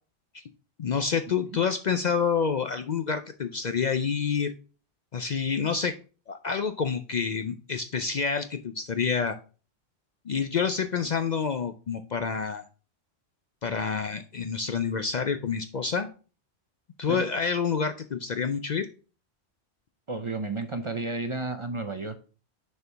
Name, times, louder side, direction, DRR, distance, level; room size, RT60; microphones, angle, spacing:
voice 1, 0.8-4.5 5.1-6.0 6.3-9.4 10.3-12.6 13.6-16.1 17.0-18.9, left 6 dB, 55° left, 8 dB, 0.6 m, -28 dB
voice 2, 20.1-22.1, right 3 dB, 35° right, 7 dB, 0.6 m, -32 dB
6.7 x 4.5 x 4.5 m, 0.36 s
omnidirectional pair, 1.1 m